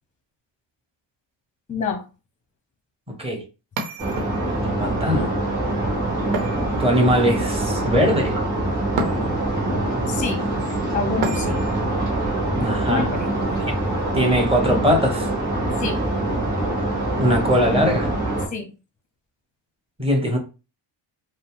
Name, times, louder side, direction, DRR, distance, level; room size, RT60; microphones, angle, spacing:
voice 1, 1.7-2.0 10.1-10.4 10.9-11.6 12.9-13.3 15.8-16.0 18.5-18.7, left 5 dB, 15° left, 0.6 m, -27 dB
voice 2, 3.1-3.4 4.5-5.3 6.8-8.4 12.6-13.1 14.1-15.3 17.2-18.1 20.0-20.4, equal, 15° right, 0.9 m, -21 dB
sound 1, 3.8-4.7 6.3-7.3 9.0-9.6 11.2-11.8, right 3 dB, 80° right, 1.0 m, -30 dB
sound 2, 4.0-18.5, right 1 dB, 40° right, 2.2 m, -24 dB
5.2 x 2.0 x 3.5 m
cardioid pair, 160°, 45 cm